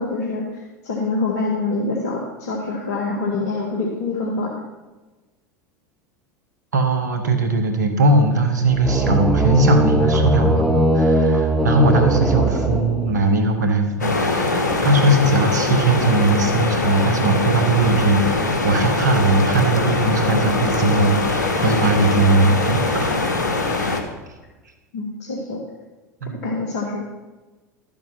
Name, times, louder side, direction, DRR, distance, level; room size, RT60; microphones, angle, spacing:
voice 1, 0.0-4.5 21.6-21.8 23.7-23.9 24.9-25.6 26.4-27.0, left 3 dB, 65° left, -1 dB, 1.8 m, -26 dB
voice 2, 6.7-23.2 26.2-26.4, right 2 dB, 80° right, 6 dB, 1.7 m, -19 dB
sound 1, 8.7-13.4, right 1 dB, ahead, 1.8 m, -19 dB
sound 2, 14.0-24.0, left 3 dB, 85° left, 1.2 m, -22 dB
12.5 x 7.3 x 5.9 m, 1.2 s
hypercardioid pair, 80°, 9 cm